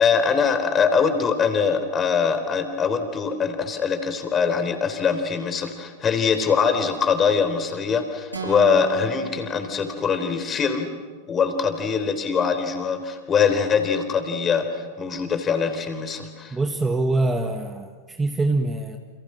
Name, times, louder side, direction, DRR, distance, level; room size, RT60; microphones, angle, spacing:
voice 1, 0.0-10.9 11.3-16.6, left 6 dB, 25° left, 8 dB, 3.8 m, -23 dB
sound 1, 8.3-10.4, right 7 dB, 85° right, 6.3 m, -36 dB
voice 2, 16.5-19.0, right 2 dB, 10° right, 4 dB, 1.8 m, -24 dB
29.5 x 29.0 x 6.4 m, 1.4 s
figure-of-eight pair, 90°, 0 cm